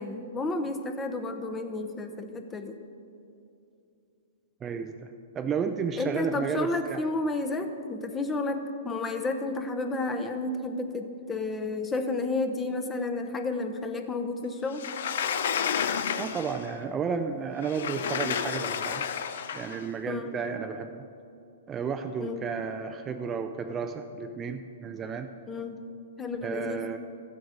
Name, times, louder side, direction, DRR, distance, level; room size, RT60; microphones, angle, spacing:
voice 1, 0.0-2.8 6.0-14.9 20.1-20.3 22.2-22.4 25.5-25.8 26.2-26.8, left 2 dB, 15° left, 6 dB, 0.8 m, -31 dB
voice 2, 4.6-7.0 16.2-19.1 19.5-21.0 21.7-25.3 26.4-27.0, right 6 dB, 20° right, 6 dB, 0.4 m, -32 dB
Sliding door, 14.7-16.7 17.6-19.8, left 7 dB, 70° left, 0.6 m, -31 dB
14.0 x 7.9 x 5.1 m, 2.6 s
hypercardioid pair, 135°, 0 cm